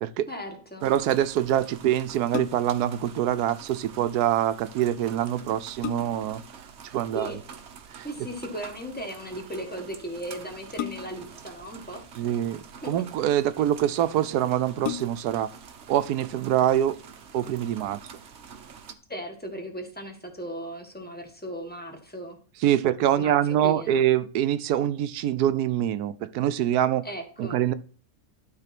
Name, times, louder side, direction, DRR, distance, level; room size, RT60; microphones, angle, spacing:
voice 1, 0.3-0.9 7.1-7.4 8.0-12.0 12.8-12.9 19.1-22.4 23.1-24.0 27.0-27.6, right 1 dB, 5° left, 1.6 m, -37 dB
sound 1, 0.8-18.9, right 6 dB, 50° right, 1.0 m, -46 dB
voice 2, 0.8-6.4 6.9-7.3 7.9-8.1 12.2-12.6 12.9-15.5 15.9-17.0 17.3-18.0 22.6-27.1 27.4-27.7, right 11 dB, 80° right, 1.2 m, -24 dB
sound 2, 2.3-2.9 4.9-5.0 5.5-6.4 7.9-8.3 10.8-11.4 12.3-13.0 13.8-13.9 14.2-14.3 14.8-15.4 15.9-16.0, left 13 dB, 85° left, 1.1 m, -35 dB
12.0 x 4.1 x 6.0 m
omnidirectional pair, 1.7 m